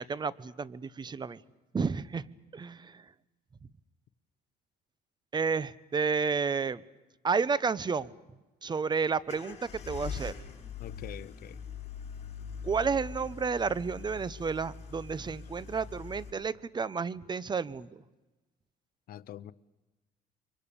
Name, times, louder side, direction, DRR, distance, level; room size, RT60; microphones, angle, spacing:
voice 1, 0.0-1.4 1.7-2.2 2.5-3.1 5.3-6.8 7.2-8.1 8.6-10.3 12.6-18.0, right 5 dB, 25° right, 0.9 m, -31 dB
sound 1, 9.3-16.3, left 6 dB, 40° left, 7.1 m, -42 dB
voice 2, 10.8-11.6 19.1-19.5, left 12 dB, 60° left, 0.9 m, -44 dB
29.5 x 24.0 x 7.0 m
cardioid pair, 110°, 17 cm